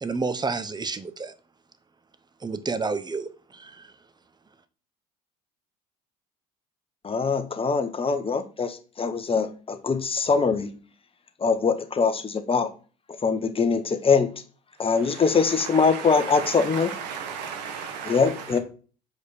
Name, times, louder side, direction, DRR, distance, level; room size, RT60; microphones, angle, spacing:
voice 1, 0.0-1.3 2.4-3.9, right 4 dB, 20° right, 13 dB, 0.9 m, -30 dB
voice 2, 7.0-10.7 11.4-12.7 13.2-14.3 14.8-16.9 18.0-18.6, left 5 dB, 25° left, 8 dB, 1.2 m, -23 dB
voice 3, 15.0-18.5, right 7 dB, 80° right, 7 dB, 1.3 m, -35 dB
6.5 x 5.0 x 4.3 m, 0.38 s
hypercardioid pair, 65°, 21 cm